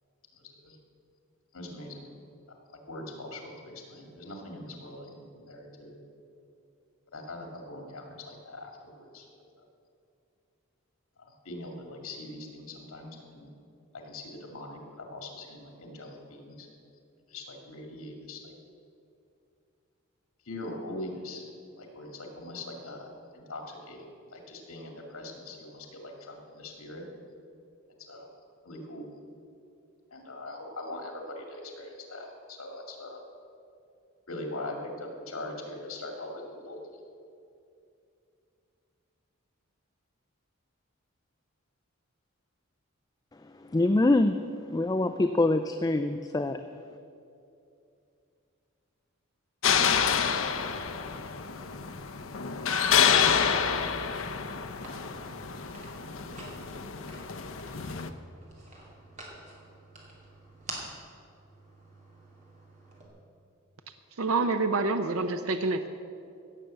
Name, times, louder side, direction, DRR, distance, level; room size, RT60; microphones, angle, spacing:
voice 1, 0.3-0.8 1.5-2.0 2.9-5.9 7.1-9.3 11.2-13.5 14.0-16.7 17.3-18.5 20.5-21.4 21.8-27.0 28.0-28.3 28.6-29.1 30.1-33.2 34.3-36.8, left 2 dB, 80° left, 2 dB, 2.4 m, -42 dB
voice 2, 43.6-44.3 44.7-46.6, left 2 dB, 15° left, 8 dB, 0.3 m, -24 dB
sound 1, 49.6-58.1, left 7 dB, 65° left, 0.7 m, -28 dB
sound 2, 50.6-63.1, right 2 dB, 35° right, 2.6 m, -49 dB
voice 3, 64.2-65.9, right 3 dB, 75° right, 8 dB, 0.6 m, -27 dB
16.5 x 6.8 x 7.6 m, 2.5 s
head